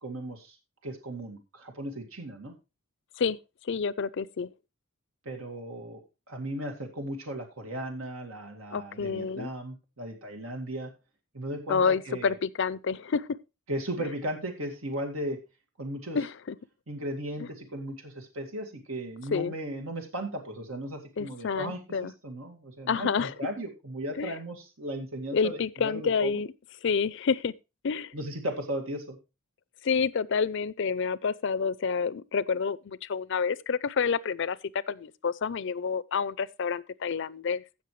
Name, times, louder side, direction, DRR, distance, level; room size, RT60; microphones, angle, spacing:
voice 1, 0.0-0.6 0.8-2.5 5.3-10.9 11.3-12.3 13.7-15.4 15.8-16.2 16.9-26.4 28.1-29.2, right 1 dB, 90° right, 2.1 m, -36 dB
voice 2, 3.6-4.5 8.7-9.5 11.7-13.3 16.1-16.6 17.4-17.5 19.3-19.5 21.2-22.1 22.9-23.3 24.2-24.4 25.3-26.5 26.8-27.5 27.8-28.1 29.8-37.6, left 5 dB, 60° left, 0.5 m, -28 dB
16.0 x 6.4 x 3.1 m
head